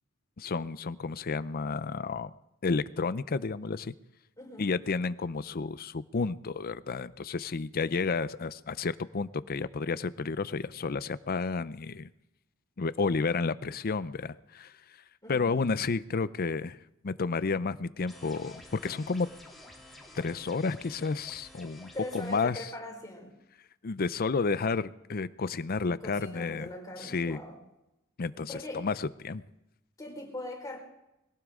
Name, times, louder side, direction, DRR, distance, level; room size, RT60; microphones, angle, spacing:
voice 1, 0.4-2.3 2.6-3.9 4.6-12.1 12.8-14.7 15.3-16.8 17.0-19.3 20.1-22.7 23.8-26.7 27.0-27.4 28.2-29.4, left 4 dB, 45° left, 15 dB, 0.5 m, -31 dB
voice 2, 4.4-4.7 15.2-15.8 21.9-23.3 25.7-27.5 28.5-28.8 30.0-30.8, left 1 dB, 15° left, 0 dB, 4.5 m, -41 dB
sound 1, 18.1-22.5, left 1 dB, ahead, 2.9 m, -51 dB
22.5 x 17.0 x 3.7 m, 0.89 s
head